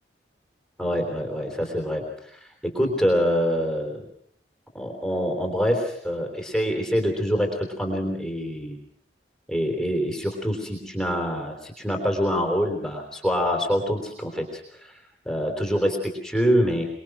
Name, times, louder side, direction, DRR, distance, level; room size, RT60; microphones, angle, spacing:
voice 1, 0.8-4.0 4.7-8.8 9.5-15.0 15.3-16.9, equal, 5° left, 3 dB, 3.4 m, -25 dB
24.5 x 22.0 x 6.2 m, 0.66 s
head